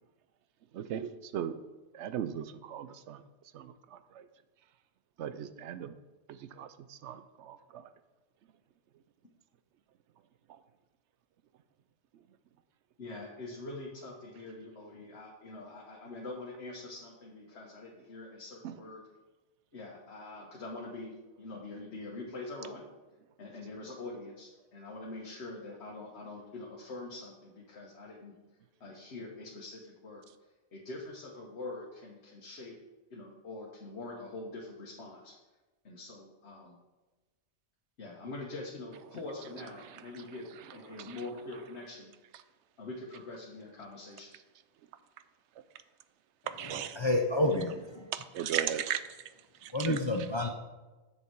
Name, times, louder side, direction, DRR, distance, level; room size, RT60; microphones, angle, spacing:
voice 1, 0.7-1.5 1.9-3.2 3.5-3.7 4.1-4.2 5.2-5.9 6.3-7.8 18.6-18.7 40.9-41.2 46.6-47.0 48.1-49.0 49.6-50.0, right 9 dB, 85° right, 0.9 m, -37 dB
voice 2, 13.0-19.0 19.7-22.8 23.4-28.3 28.8-30.2 30.7-32.8 33.1-35.3 35.8-36.8 38.0-40.5 40.7-42.1 42.8-44.3, left 2 dB, 75° left, 1.4 m, -44 dB
voice 3, 47.0-48.0 49.7-50.5, left 1 dB, 30° left, 0.6 m, -29 dB
7.2 x 6.8 x 4.6 m
omnidirectional pair, 1.1 m